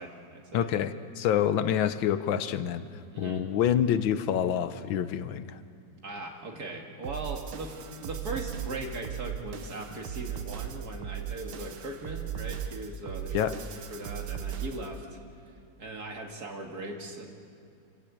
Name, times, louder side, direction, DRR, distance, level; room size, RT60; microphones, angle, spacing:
voice 1, 0.0-0.7 3.1-3.5 6.0-15.1 15.8-17.3, right 2 dB, 55° right, 2 dB, 2.6 m, -39 dB
voice 2, 0.5-2.8 3.2-5.6 13.3-13.5, left 9 dB, 90° left, 12 dB, 1.6 m, -27 dB
sound 1, 7.0-15.0, right 9 dB, 85° right, 1.9 m, -37 dB
26.5 x 15.5 x 8.6 m, 2.5 s
omnidirectional pair, 2.1 m